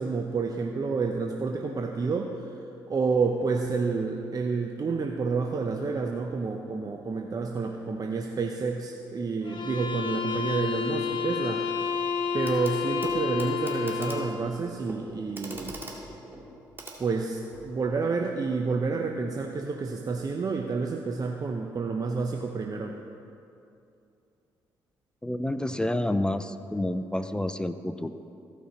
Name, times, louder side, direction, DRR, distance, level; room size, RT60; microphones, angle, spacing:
voice 1, 0.0-2.5 2.9-11.6 12.3-15.8 17.0-23.0, right 4 dB, 40° right, 2 dB, 0.8 m, -29 dB
sound 1, 9.5-14.4, left 6 dB, 55° left, 1.0 m, -30 dB
Clock, 12.4-12.8 13.0-17.7 18.9-19.0, right 1 dB, 20° right, 2.2 m, -42 dB
voice 2, 25.2-28.1, left 1 dB, 10° left, 11 dB, 0.5 m, -29 dB
15.5 x 5.6 x 4.3 m, 2.6 s
hypercardioid pair, 50°, 10 cm